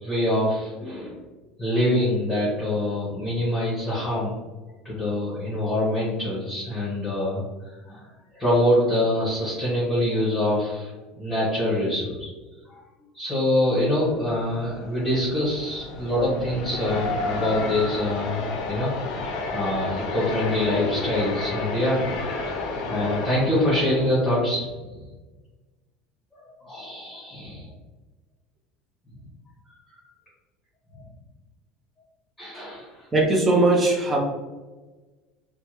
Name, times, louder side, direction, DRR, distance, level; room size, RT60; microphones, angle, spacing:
voice 1, 0.0-1.2 1.6-4.3 4.8-8.1 8.3-10.9 11.2-12.3 12.7-12.8 13.1-19.2 19.5-22.0 22.9-24.7 26.6-27.7 29.9-30.0 30.9-31.0 32.4-33.1, left 1 dB, 10° left, -9 dB, 1.1 m, -25 dB
sound 1, 13.7-24.1, left 3 dB, 60° left, 0.6 m, -31 dB
voice 2, 33.1-34.2, right 2 dB, 15° right, 0 dB, 0.6 m, -19 dB
3.4 x 2.2 x 3.0 m, 1.2 s
cardioid pair, 150°, 0 cm